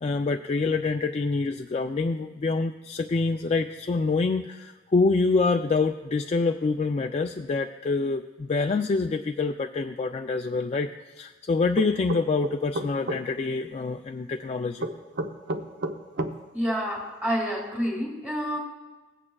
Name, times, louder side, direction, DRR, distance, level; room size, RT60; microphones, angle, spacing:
voice 1, 0.0-10.9 11.2-14.9, left 3 dB, 35° left, 4 dB, 0.3 m, -26 dB
sound 1, 11.8-13.2 14.8-16.3, right 1 dB, 60° right, 0.7 m, -30 dB
voice 2, 16.5-18.6, equal, 5° right, -2 dB, 2.1 m, -28 dB
17.5 x 8.6 x 2.3 m, 1.3 s
head